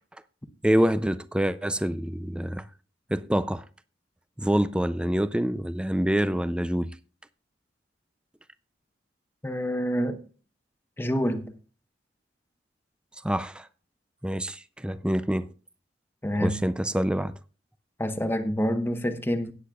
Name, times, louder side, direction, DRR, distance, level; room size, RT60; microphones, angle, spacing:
voice 1, 0.6-2.7 3.1-3.6 4.4-6.9 13.2-13.7 14.2-15.5 16.4-17.3, equal, 5° right, 0.4 m, -26 dB
voice 2, 9.4-10.3 11.0-11.5 16.2-16.6 18.0-19.5, equal, 10° left, 0.9 m, -27 dB
17.5 x 8.4 x 2.4 m
head